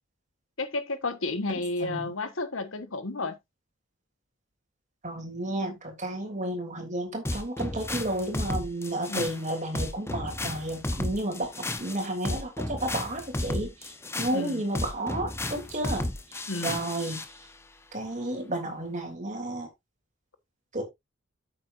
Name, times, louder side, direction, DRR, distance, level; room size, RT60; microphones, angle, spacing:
voice 1, 0.6-3.4 9.1-9.4 14.3-14.6 16.5-16.8, left 2 dB, 80° left, 1.3 m, -32 dB
voice 2, 1.8-2.1 5.0-13.9 14.2-16.1 16.6-17.2 17.9-19.7 20.7-20.8, right 1 dB, 35° right, 3.1 m, -32 dB
sound 1, 7.2-17.3, left 1 dB, 15° left, 0.8 m, -33 dB
9.2 x 7.8 x 2.6 m
head